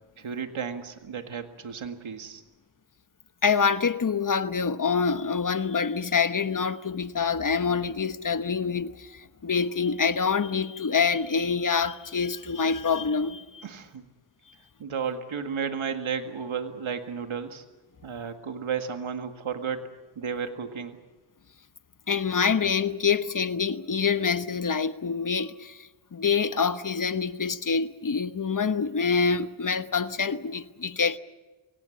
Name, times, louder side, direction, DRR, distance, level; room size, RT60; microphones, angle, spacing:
voice 1, 0.2-2.4 13.6-14.1 14.8-17.6 18.0-19.9 20.2-21.0, right 6 dB, 80° right, 2.0 m, -33 dB
voice 2, 3.4-13.6 22.1-31.2, left 5 dB, 40° left, 1.1 m, -26 dB
25.5 x 18.0 x 8.6 m
wide cardioid pair, 75°, 48 cm